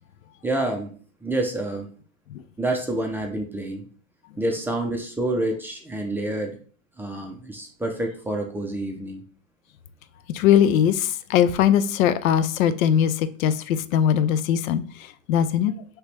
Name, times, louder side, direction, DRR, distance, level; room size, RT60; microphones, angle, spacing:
voice 1, 0.4-0.9 1.2-1.9 2.6-3.9 4.4-6.6 7.0-9.2, right 1 dB, 5° right, 0.5 m, -28 dB
voice 2, 10.3-14.8 15.3-15.7, left 9 dB, 80° left, 0.6 m, -20 dB
5.0 x 3.0 x 3.3 m
supercardioid pair, 125°, 40 cm